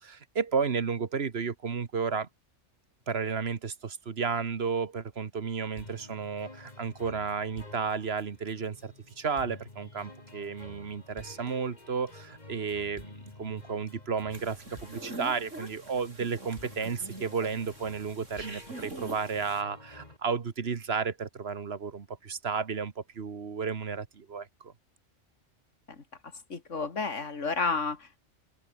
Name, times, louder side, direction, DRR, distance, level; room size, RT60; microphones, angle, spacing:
voice 1, 0.0-2.3 3.1-13.1 13.4-24.7, right 5 dB, 55° right, 1.5 m, -33 dB
sound 1, 5.8-20.2, left 2 dB, 35° left, 2.9 m, -50 dB
sound 2, 14.3-19.6, right 2 dB, 85° right, 6.9 m, -44 dB
voice 2, 25.9-28.2, left 4 dB, 75° left, 2.6 m, -32 dB
open air
omnidirectional pair, 1.3 m